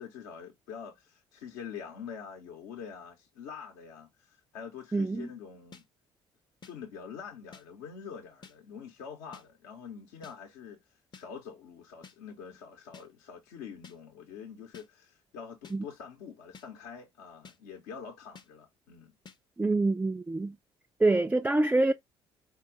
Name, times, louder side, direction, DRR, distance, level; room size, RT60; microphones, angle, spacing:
voice 1, 0.0-5.8 6.7-19.1, left 7 dB, 65° left, 0.9 m, -45 dB
voice 2, 4.9-5.3 15.7-15.8 19.6-20.6 21.0-21.9, right 2 dB, 10° right, 0.3 m, -26 dB
sound 1, 5.7-5.8 6.6-6.7 7.5-7.6 8.4-8.6 9.3-9.5 10.2-10.4 11.1-11.3 12.0-12.2 12.9-13.1 13.8-14.0 14.7-14.9 15.6-15.8 16.5-16.7 17.4-17.6 18.4-18.5 19.3-19.4, left 5 dB, 30° left, 0.7 m, -50 dB
4.7 x 2.2 x 3.9 m
figure-of-eight pair, 50°, 14 cm